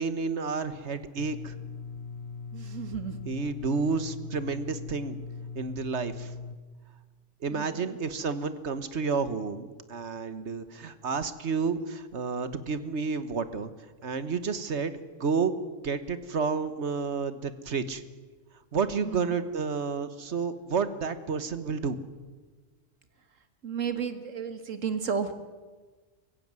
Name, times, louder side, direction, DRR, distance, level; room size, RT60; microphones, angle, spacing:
voice 1, 0.0-1.5 3.3-5.2 5.5-6.3 7.4-13.7 14.0-14.9 15.2-15.6 15.8-18.0 18.7-22.0, right 5 dB, 65° right, 13 dB, 1.5 m, -30 dB
sound 1, 1.2-6.6, left 5 dB, 60° left, 1.1 m, -40 dB
voice 2, 2.5-3.2 7.5-8.0 19.0-19.3 23.6-25.3, right 6 dB, 90° right, 10 dB, 2.0 m, -33 dB
24.0 x 15.5 x 9.6 m, 1.4 s
omnidirectional pair, 1.3 m